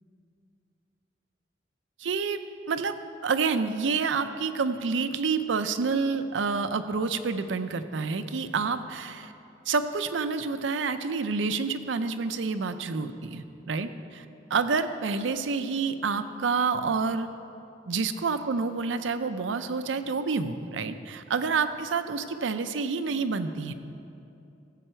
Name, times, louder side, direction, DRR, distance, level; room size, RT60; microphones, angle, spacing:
voice 1, 2.0-2.4 2.7-2.9 3.2-9.3 9.7-14.2 14.5-17.3 17.9-23.7, right 4 dB, 75° right, 9 dB, 0.5 m, -28 dB
15.0 x 7.7 x 4.4 m, 2.7 s
head